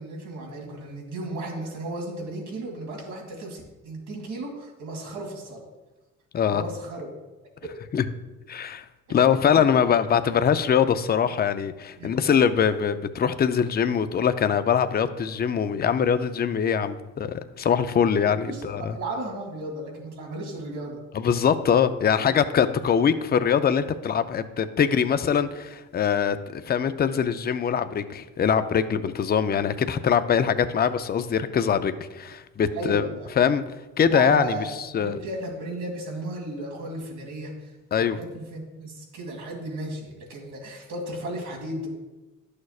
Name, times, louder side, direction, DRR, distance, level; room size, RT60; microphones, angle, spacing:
voice 1, 0.0-5.6 6.5-7.1 7.6-7.8 12.0-12.1 18.4-21.0 32.7-33.3 34.1-41.9, right 2 dB, 80° right, 0 dB, 2.2 m, -35 dB
voice 2, 8.5-8.8 9.1-19.0 21.1-33.0 33.4-33.6 34.0-34.6 34.9-35.2 37.9-38.2, left 7 dB, 30° left, 11 dB, 0.5 m, -23 dB
11.5 x 6.5 x 2.4 m, 1.1 s
cardioid pair, 90°, 30 cm